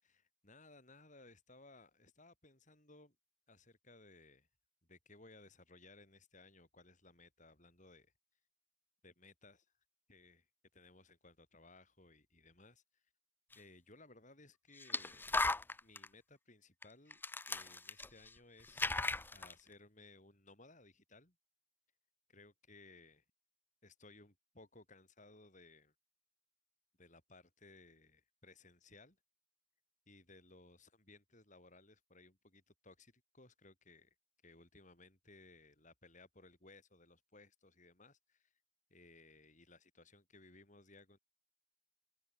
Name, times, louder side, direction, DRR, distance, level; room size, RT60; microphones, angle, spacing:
voice 1, 0.0-3.2 3.5-4.5 4.8-8.1 9.0-9.7 10.1-10.5 10.7-13.0 13.5-15.2 15.8-18.9 19.3-21.4 22.3-23.2 23.8-25.9 27.0-29.2 30.1-34.1 34.4-38.5 38.9-41.2, left 2 dB, 40° left, 6.7 m, -61 dB
sound 1, 13.5-13.6 14.8-16.1 16.8-16.9 17.1-18.4 18.6-19.5, left 3 dB, 10° left, 0.6 m, -37 dB
head